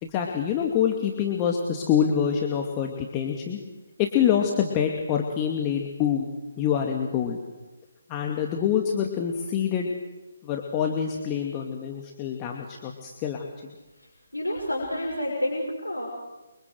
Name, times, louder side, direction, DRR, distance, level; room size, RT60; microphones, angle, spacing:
voice 1, 0.0-3.6 4.0-6.3 6.6-7.4 8.1-9.9 10.4-13.7, left 8 dB, 20° left, 1 dB, 2.5 m, -26 dB
voice 2, 14.3-16.1, left 1 dB, 85° left, -1 dB, 6.3 m, -29 dB
29.0 x 25.0 x 8.0 m, 1.1 s
figure-of-eight pair, 145°, 0 cm